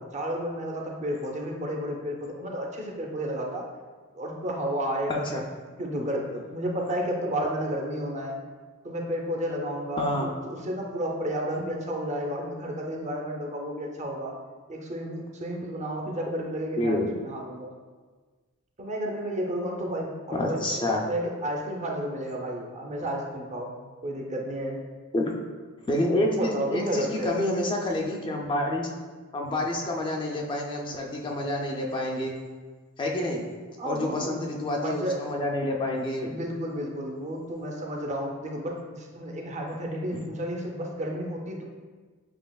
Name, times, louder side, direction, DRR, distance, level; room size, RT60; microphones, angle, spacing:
voice 1, 0.1-3.7 4.1-5.2 5.8-8.4 8.8-14.3 14.7-17.7 18.8-23.7 24.0-24.8 26.3-27.3 33.8-34.4 34.7-35.2 36.2-41.6, equal, 35° right, 0 dB, 0.6 m, -32 dB
voice 2, 5.1-5.4 10.0-10.3 16.8-17.1 20.3-21.0 25.1-25.3 25.9-28.9 29.3-32.3 33.0-33.4 33.8-36.4 40.1-40.2, left 1 dB, 20° left, 0 dB, 0.4 m, -28 dB
7.5 x 2.8 x 2.3 m, 1.4 s
head